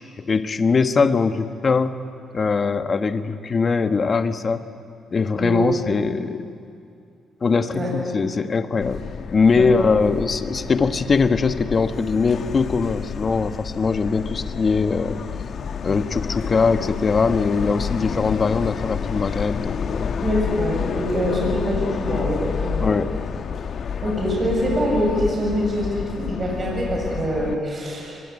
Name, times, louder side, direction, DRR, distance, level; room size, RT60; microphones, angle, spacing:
voice 1, 0.3-2.0 2.3-4.6 5.1-6.5 7.4-9.0 9.3-15.2 15.8-20.2 22.8-23.1, left 4 dB, 40° left, 9 dB, 1.4 m, -21 dB
Subway metro underground, 8.8-27.5, left 6 dB, 55° left, 1.2 m, -29 dB
voice 2, 9.6-9.9 20.2-22.9 24.0-28.3, equal, 35° right, -2 dB, 7.5 m, -24 dB
24.5 x 21.5 x 9.9 m, 2.4 s
cardioid pair, 90°, 0 cm